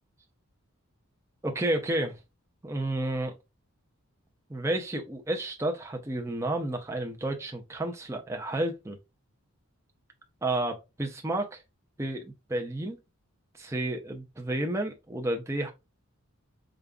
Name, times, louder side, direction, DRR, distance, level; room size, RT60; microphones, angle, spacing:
voice 1, 1.4-2.2 2.6-3.4 4.5-9.0 10.4-11.6 12.0-13.0 13.5-15.7, right 1 dB, 10° right, 0.5 m, -31 dB
5.0 x 2.3 x 2.3 m
head